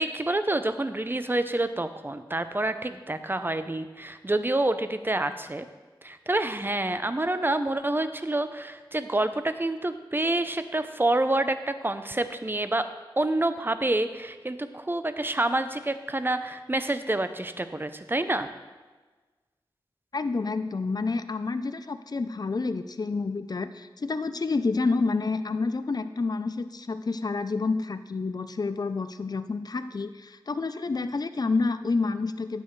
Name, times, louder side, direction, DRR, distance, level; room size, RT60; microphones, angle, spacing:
voice 1, 0.0-5.7 6.0-12.9 13.2-18.5, right 2 dB, 25° right, 10 dB, 0.6 m, -28 dB
voice 2, 20.1-32.6, left 3 dB, 50° left, 11 dB, 0.5 m, -29 dB
11.0 x 8.1 x 3.2 m, 1.3 s
wide cardioid pair, 50°, 9 cm